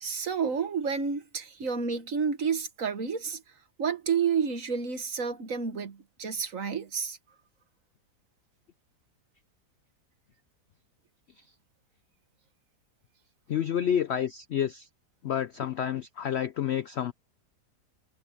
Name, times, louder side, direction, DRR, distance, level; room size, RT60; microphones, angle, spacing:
voice 1, 0.0-3.4 3.8-7.2, right 6 dB, 50° right, 1.7 m, -30 dB
voice 2, 13.5-14.9 15.2-17.1, left 9 dB, 75° left, 0.6 m, -29 dB
omnidirectional pair, 1.8 m